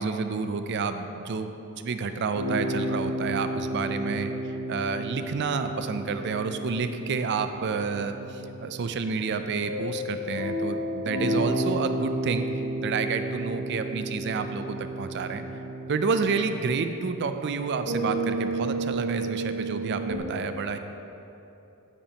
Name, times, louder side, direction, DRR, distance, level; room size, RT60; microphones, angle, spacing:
voice 1, 0.0-4.3 4.7-12.5 12.8-15.4 15.9-20.8, right 5 dB, 55° right, 9 dB, 0.4 m, -29 dB
sound 1, 2.3-20.2, right 1 dB, 75° right, 1.3 m, -32 dB
9.0 x 8.6 x 2.9 m, 3.0 s
head